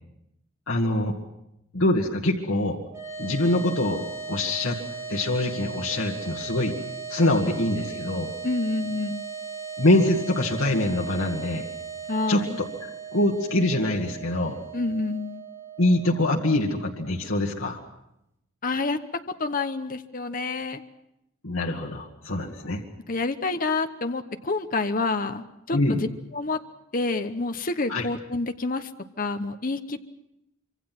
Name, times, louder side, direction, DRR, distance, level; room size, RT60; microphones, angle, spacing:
voice 1, 0.7-1.2 1.7-2.8 3.2-4.8 5.1-6.8 7.1-8.3 9.8-11.7 12.3-12.4 13.1-14.6 15.8-17.8 21.4-22.8 25.7-26.0 27.9-28.1, left 1 dB, 75° left, 0 dB, 2.1 m, -24 dB
sound 1, 2.9-17.3, right 5 dB, 15° right, 5.3 m, -38 dB
voice 2, 8.4-9.2 12.1-12.6 14.7-15.4 18.6-19.0 19.4-20.8 23.1-26.1 26.3-26.6 26.9-28.9 29.2-30.1, left 3 dB, 40° left, 8 dB, 1.0 m, -28 dB
25.5 x 25.0 x 6.0 m, 0.84 s
head